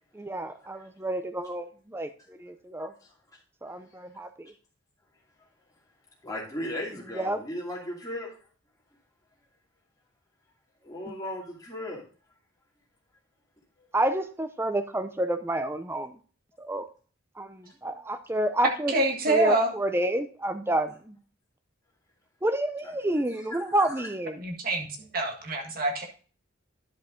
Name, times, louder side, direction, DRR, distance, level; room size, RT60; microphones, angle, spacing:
voice 1, 0.1-2.9 3.6-4.5 7.1-7.4 11.1-11.2 13.9-16.1 16.6-16.9 17.4-18.9 19.3-21.2 22.4-24.4, right 1 dB, 10° right, 0.6 m, -29 dB
voice 2, 6.2-8.3 10.8-12.0 17.6-17.7 22.8-23.2 23.5-23.9, left 1 dB, 15° left, 2.5 m, -36 dB
voice 3, 18.9-19.7 24.4-24.9 25.1-26.1, right 2 dB, 45° right, 1.6 m, -26 dB
10.5 x 5.3 x 3.8 m
head